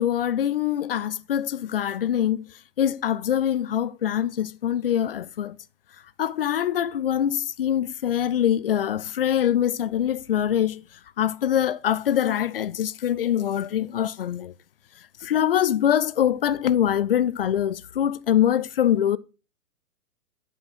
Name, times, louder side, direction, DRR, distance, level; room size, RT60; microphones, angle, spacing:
voice 1, 0.0-2.4 2.8-5.5 6.2-10.8 11.2-14.5 15.2-19.2, left 10 dB, 40° left, 0.5 m, -24 dB
9.0 x 7.0 x 4.3 m
figure-of-eight pair, 115°, 46 cm